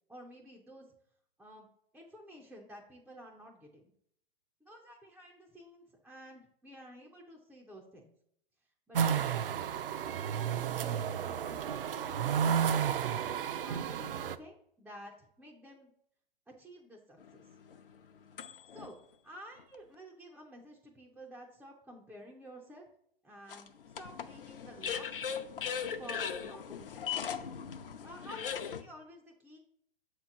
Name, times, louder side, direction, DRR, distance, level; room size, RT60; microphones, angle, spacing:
voice 1, 0.1-0.9 1.4-1.7 1.9-3.9 4.6-8.1 8.9-9.7 10.1-12.9 13.6-15.9 16.5-17.4 18.7-19.0 19.2-22.9 23.2-25.1 26.0-27.3 28.0-29.6, equal, ahead, -2 dB, 0.4 m, -52 dB
sound 1, 8.9-14.4, right 8 dB, 70° right, 0.5 m, -32 dB
sound 2, 17.2-18.9 19.6-19.7 23.5-28.8, left 7 dB, 65° left, 0.7 m, -39 dB
7.2 x 3.0 x 5.8 m, 0.69 s
figure-of-eight pair, 115°, 29 cm